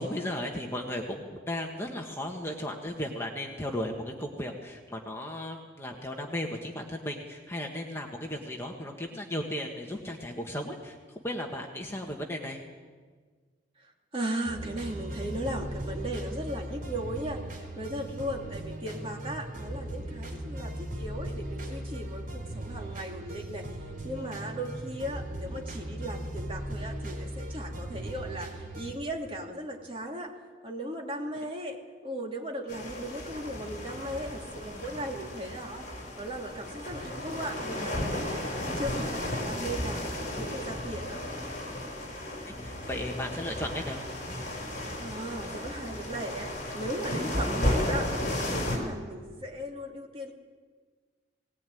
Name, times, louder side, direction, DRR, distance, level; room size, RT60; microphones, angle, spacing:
voice 1, 0.0-11.0 11.2-12.6 42.6-44.0, left 1 dB, 15° left, 1 dB, 1.5 m, -35 dB
voice 2, 13.8-30.3 30.6-35.9 36.2-41.2 45.0-50.3, right 1 dB, 30° right, 0 dB, 2.9 m, -37 dB
sound 1, 14.5-29.0, right 1 dB, 45° right, 4.5 m, -38 dB
sound 2, 32.7-48.8, left 1 dB, 45° left, 5.1 m, -34 dB
19.0 x 19.0 x 9.3 m, 1.5 s
head